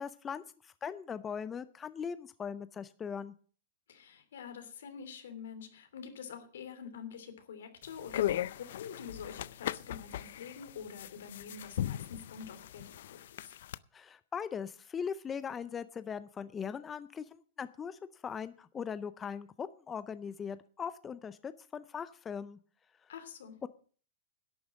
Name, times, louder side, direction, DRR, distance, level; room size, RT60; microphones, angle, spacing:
voice 1, 0.0-3.3 13.9-22.6 23.6-23.7, left 7 dB, 15° left, 14 dB, 0.5 m, -40 dB
voice 2, 3.9-13.5 23.1-23.5, left 7 dB, 85° left, 8 dB, 3.0 m, -46 dB
sound 1, 7.8-13.8, left 12 dB, 70° left, 0.5 m, -38 dB
11.5 x 8.7 x 7.4 m, 0.42 s
supercardioid pair, 150°, 0 cm